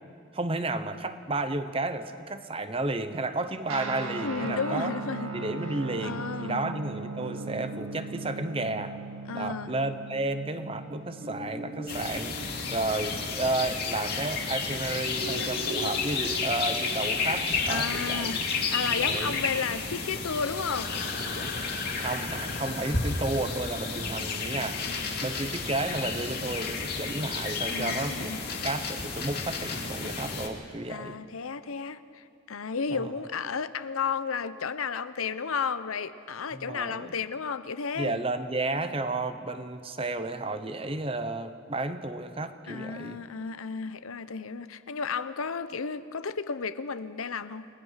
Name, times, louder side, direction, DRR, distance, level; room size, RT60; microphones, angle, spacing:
voice 1, 0.3-4.9 5.3-8.9 9.3-12.4 12.7-18.3 19.0-19.4 22.0-24.9 25.2-28.3 28.6-31.2 32.9-33.1 36.5-37.1 38.0-43.2, right 2 dB, 25° right, 10 dB, 0.9 m, -32 dB
Guitar, 3.7-13.5, right 3 dB, 80° right, 1.7 m, -39 dB
voice 2, 4.2-5.3 6.0-6.7 9.3-9.7 17.7-18.4 18.7-20.9 27.7-28.4 30.9-38.2 42.7-47.7, left 5 dB, 90° left, 13 dB, 0.8 m, -33 dB
sound 1, 7.2-10.3 10.7-10.8 11.2-14.8 15.1-19.2, right 2 dB, 45° right, 7.3 m, -42 dB
sound 2, 11.9-30.5, left 4 dB, 50° left, 2.6 m, -31 dB
29.5 x 19.5 x 5.8 m, 2.3 s
head